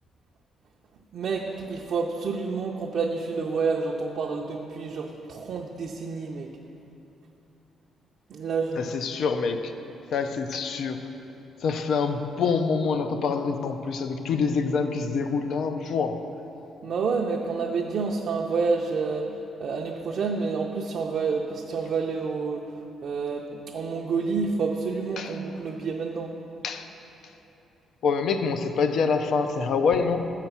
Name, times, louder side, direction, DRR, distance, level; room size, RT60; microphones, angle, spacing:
voice 1, 1.1-6.5 8.3-8.8 16.8-19.3 19.6-22.7 23.0-26.3, right 4 dB, 60° right, 0 dB, 0.5 m, -28 dB
voice 2, 8.8-9.7 10.1-11.1 11.6-16.3 25.2-25.4 26.6-26.9 28.0-30.3, left 5 dB, 70° left, 8 dB, 0.4 m, -26 dB
7.3 x 5.8 x 5.5 m, 3.0 s
cardioid pair, 110°, 0 cm